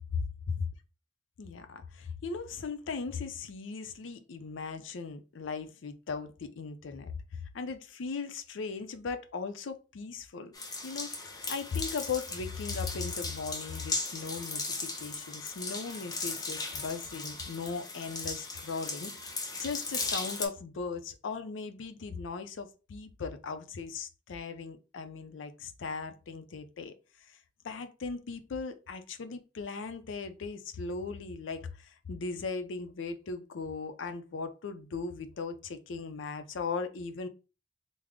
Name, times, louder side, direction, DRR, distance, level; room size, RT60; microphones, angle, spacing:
voice 1, 1.4-7.1 7.5-10.5 10.8-11.1 11.5-19.3 19.6-26.9 27.6-37.3, left 4 dB, 75° left, 0.4 m, -38 dB
sound 1, 10.5-20.5, left 3 dB, 20° left, 0.6 m, -37 dB
3.5 x 2.0 x 3.5 m
head